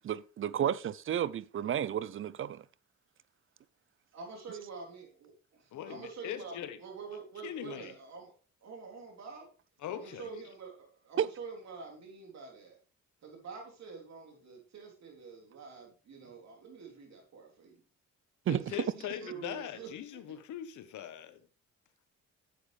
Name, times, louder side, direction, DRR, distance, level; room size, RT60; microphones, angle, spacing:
voice 1, 0.0-2.6 11.2-11.3 18.5-18.6, right 10 dB, 45° right, 0.5 m, -32 dB
voice 2, 4.1-8.3 8.6-9.5 9.9-12.8 13.2-17.8 18.5-20.4, right 5 dB, 60° right, 3.5 m, -47 dB
voice 3, 5.7-6.8 7.4-7.9 9.8-10.3 18.5-21.4, left 10 dB, 75° left, 1.2 m, -41 dB
10.5 x 7.5 x 3.3 m
cardioid pair, 90°, 30 cm